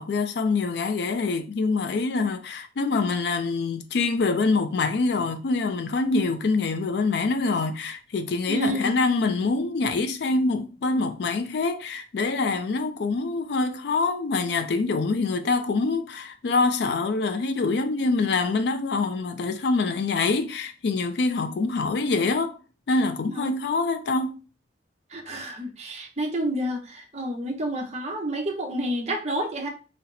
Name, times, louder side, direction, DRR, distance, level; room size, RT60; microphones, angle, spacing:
voice 1, 0.0-22.6 22.9-24.4, left 3 dB, 70° left, 0.4 m, -25 dB
voice 2, 8.5-8.9 23.3-23.5 25.1-29.7, right 1 dB, 40° right, 0.8 m, -29 dB
3.9 x 2.0 x 4.1 m
head